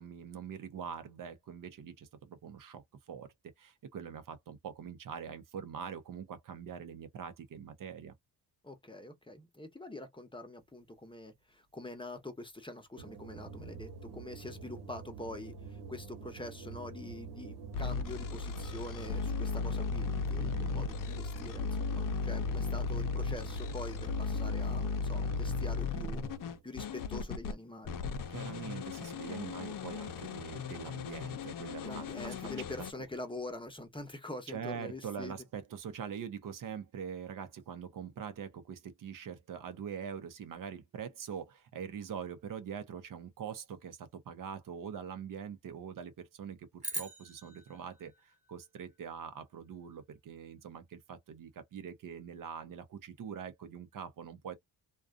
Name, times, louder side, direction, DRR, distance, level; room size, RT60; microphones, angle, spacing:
voice 1, 0.0-8.1 20.4-20.8 28.3-32.4 34.5-46.7 46.9-54.5, right 7 dB, 55° right, 0.7 m, -43 dB
voice 2, 8.6-26.2 26.6-28.0 31.8-35.3, left 2 dB, 15° left, 0.9 m, -45 dB
sound 1, 13.0-26.6, right 5 dB, 70° right, 1.1 m, -47 dB
sound 2, 17.7-27.5 27.9-32.9, left 4 dB, 55° left, 0.6 m, -36 dB
sound 3, 46.8-49.2, right 2 dB, 15° right, 1.2 m, -43 dB
2.5 x 2.2 x 2.4 m
cardioid pair, 75°, 39 cm